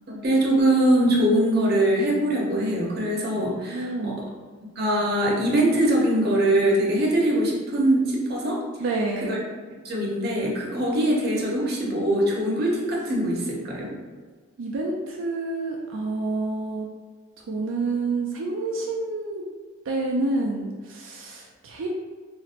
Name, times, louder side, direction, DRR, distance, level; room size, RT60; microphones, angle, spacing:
voice 1, 0.1-4.1 4.8-8.6 9.2-9.4 9.8-13.9, right 1 dB, 55° right, -3 dB, 0.7 m, -22 dB
voice 2, 3.7-4.2 8.8-9.3 14.6-16.9 17.5-19.4 19.9-21.9, right 2 dB, 85° right, -1 dB, 0.4 m, -28 dB
4.1 x 2.0 x 2.4 m, 1.5 s
head